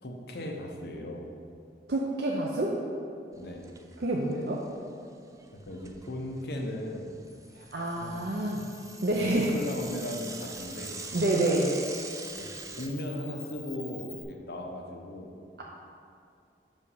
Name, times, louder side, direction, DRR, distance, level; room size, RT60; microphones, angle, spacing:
voice 1, 0.0-1.3 3.3-3.8 5.7-7.1 7.9-8.2 9.1-11.0 12.4-12.5 12.8-15.3, left 1 dB, 65° left, 2 dB, 0.8 m, -37 dB
voice 2, 1.9-2.8 4.0-4.6 7.6-8.7 9.0-9.5 11.1-11.8, right 1 dB, 65° right, -2 dB, 0.7 m, -28 dB
Bicycle / Mechanisms, 3.3-4.0 4.3-4.4 4.7-4.8 5.4-6.6 7.0-12.9, right 4 dB, 20° right, 0.4 m, -43 dB
Camera, 7.2-14.2, left 5 dB, 20° left, 1.1 m, -49 dB
6.2 x 5.4 x 5.5 m, 2.4 s
head